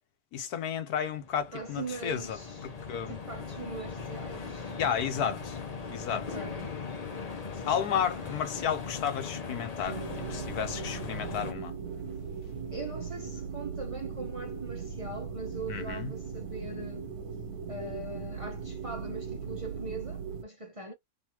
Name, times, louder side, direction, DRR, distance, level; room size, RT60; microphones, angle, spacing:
voice 1, 0.3-3.2 4.8-5.6 5.9-6.2 7.7-10.0 10.3-11.7 15.7-16.1, left 8 dB, 85° left, 1.4 m, -32 dB
sound 1, 1.1-11.5, left 5 dB, 40° left, 0.6 m, -39 dB
voice 2, 1.5-2.7 3.1-4.7 6.1-6.8 7.9-8.4 12.7-17.1 17.7-20.9, right 2 dB, 25° right, 0.8 m, -41 dB
sound 2, 9.8-20.4, right 6 dB, 80° right, 1.4 m, -38 dB
4.0 x 2.7 x 2.9 m
omnidirectional pair, 1.6 m